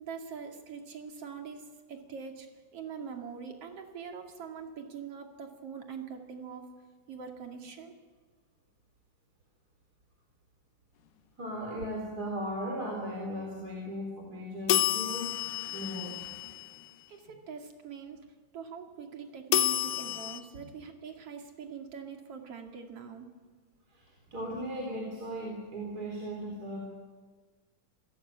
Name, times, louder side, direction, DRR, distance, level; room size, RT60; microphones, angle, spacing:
voice 1, 0.0-2.5 2.7-6.7 7.1-7.9 17.1-18.2 18.5-23.3, right 6 dB, 45° right, 3 dB, 3.1 m, -43 dB
voice 2, 11.4-15.3 15.7-16.2 23.9-26.8, equal, 25° right, -1 dB, 3.9 m, -37 dB
sound 1, 14.7-16.9 19.5-20.4, left 12 dB, 70° left, 2.5 m, -30 dB
26.5 x 17.0 x 8.8 m, 1.4 s
omnidirectional pair, 4.0 m